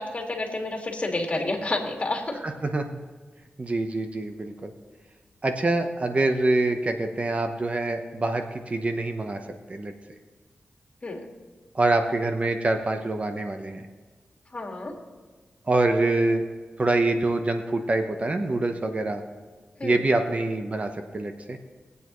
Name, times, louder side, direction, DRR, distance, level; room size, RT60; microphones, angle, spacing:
voice 1, 0.0-2.4 11.0-11.3 14.5-15.0 19.8-20.0, left 2 dB, 35° left, 1 dB, 2.1 m, -30 dB
voice 2, 2.4-2.9 3.6-4.7 5.4-9.4 9.7-9.9 11.7-13.9 15.7-16.4 16.8-19.2 19.8-21.6, right 2 dB, 35° right, 6 dB, 0.9 m, -25 dB
19.5 x 8.2 x 3.1 m, 1.4 s
wide cardioid pair, 75°, 4 cm